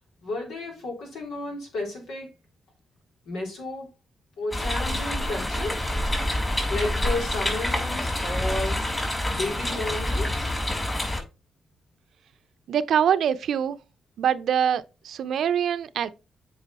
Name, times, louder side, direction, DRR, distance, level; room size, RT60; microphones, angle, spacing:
voice 1, 0.2-2.3 3.3-3.9 4.4-5.8 6.7-8.8 9.3-10.5, left 2 dB, 80° left, 3.4 m, -32 dB
sound 1, 4.5-11.2, left 1 dB, 20° left, 4.9 m, -27 dB
voice 2, 12.7-13.8 14.2-16.1, right 8 dB, 75° right, 0.6 m, -24 dB
8.2 x 4.9 x 4.1 m
supercardioid pair, 55°, 0 cm